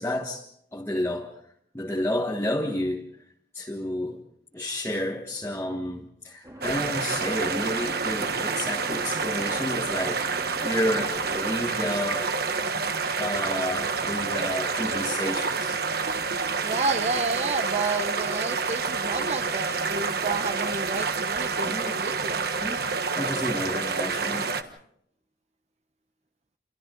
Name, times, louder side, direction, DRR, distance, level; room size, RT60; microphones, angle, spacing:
voice 1, 0.0-1.3 1.7-3.0 3.5-4.2 4.5-12.3 13.2-15.8 21.7-22.0 22.6-22.8 23.1-24.7, left 1 dB, 15° left, 1.5 m, -31 dB
sound 1, 6.4-11.4, equal, 20° right, 2.0 m, -44 dB
sound 2, 6.6-24.6, right 4 dB, 60° right, 1.3 m, -28 dB
voice 2, 16.6-22.5, right 3 dB, 35° right, 0.9 m, -30 dB
28.5 x 28.0 x 3.9 m
head